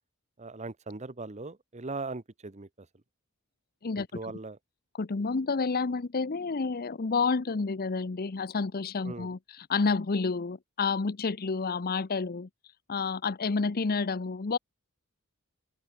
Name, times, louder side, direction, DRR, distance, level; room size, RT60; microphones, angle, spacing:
voice 1, 0.4-2.9 3.9-4.6 9.0-9.3, right 3 dB, 30° right, 1.1 m, -39 dB
voice 2, 3.8-4.2 5.0-12.5 12.9-14.6, left 4 dB, 45° left, 0.7 m, -29 dB
open air
head